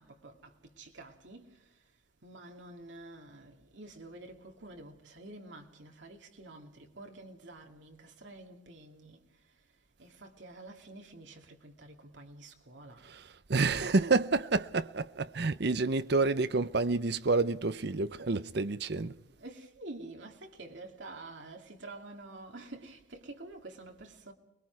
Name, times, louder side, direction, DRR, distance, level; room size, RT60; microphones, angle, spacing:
voice 1, 0.0-1.6 2.2-9.2 10.0-13.0 19.4-24.3, right 2 dB, 70° right, 2.5 m, -49 dB
voice 2, 13.0-19.2, right 3 dB, 55° right, 0.7 m, -29 dB
29.5 x 21.0 x 4.7 m
head